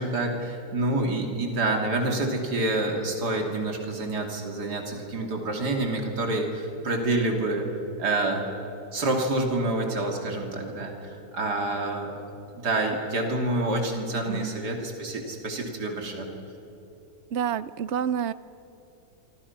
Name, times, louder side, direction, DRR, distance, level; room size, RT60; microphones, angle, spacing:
voice 1, 0.0-7.7 8.0-8.4 8.9-12.2 12.5-16.3, right 2 dB, 80° right, 2 dB, 3.3 m, -27 dB
voice 2, 14.2-14.6 17.3-18.3, right 8 dB, 60° right, 15 dB, 0.8 m, -28 dB
26.0 x 25.5 x 5.9 m, 3.0 s
omnidirectional pair, 1.7 m